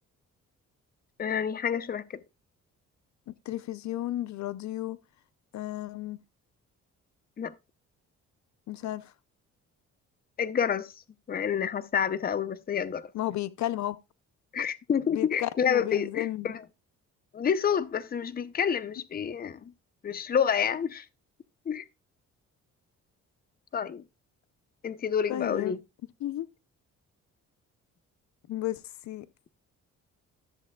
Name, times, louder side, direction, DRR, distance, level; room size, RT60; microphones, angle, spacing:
voice 1, 1.2-2.2 7.4-7.5 10.4-10.9 11.3-13.1 14.5-16.6 17.3-19.7 20.0-21.1 21.7-21.8 23.7-24.0 24.8-25.8, left 7 dB, 30° left, 0.6 m, -28 dB
voice 2, 3.3-5.0 5.5-6.2 8.7-9.1 13.1-14.0 15.1-16.5 25.3-25.8 26.2-26.5 28.5-29.3, left 14 dB, 70° left, 0.6 m, -33 dB
13.5 x 7.3 x 2.2 m
cardioid pair, 90°, 30 cm